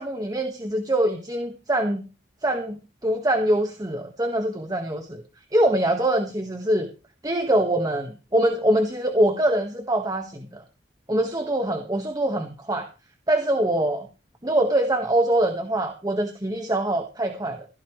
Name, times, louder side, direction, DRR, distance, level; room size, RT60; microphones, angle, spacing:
voice 1, 0.0-2.0 2.4-5.2 5.5-6.9 7.2-10.6 11.1-12.9 13.3-14.1 14.4-17.7, right 1 dB, 20° right, 5 dB, 1.8 m, -24 dB
16.0 x 16.0 x 3.3 m, 0.31 s
head